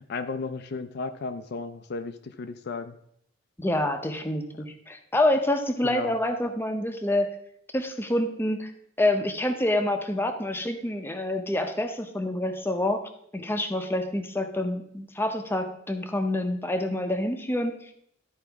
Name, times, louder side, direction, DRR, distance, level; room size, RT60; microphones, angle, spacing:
voice 1, 0.0-3.0 5.8-6.1, left 4 dB, 55° left, 8 dB, 0.4 m, -34 dB
voice 2, 3.6-7.3 7.7-8.7 9.0-13.0 13.3-17.9, left 1 dB, 10° left, 5 dB, 0.7 m, -27 dB
12.5 x 4.7 x 3.5 m, 0.68 s
head